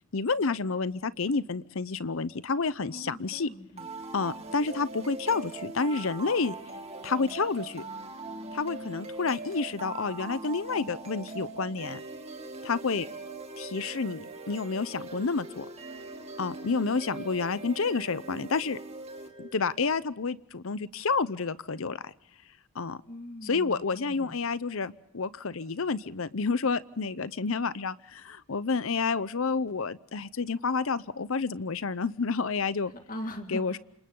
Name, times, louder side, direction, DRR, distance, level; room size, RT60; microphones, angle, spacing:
voice 1, 0.1-3.5 4.1-6.6 7.0-7.8 8.5-12.0 12.6-13.1 13.6-15.7 16.4-18.8 19.4-22.1 22.7-23.0 23.4-32.9 33.5-33.8, left 4 dB, 65° left, 16 dB, 0.8 m, -29 dB
voice 2, 2.9-3.9 23.1-24.4 32.9-33.8, equal, 40° left, 5 dB, 2.1 m, -41 dB
sound 1, 3.8-19.8, right 3 dB, 30° right, 2.5 m, -41 dB
28.5 x 26.5 x 3.9 m, 0.73 s
head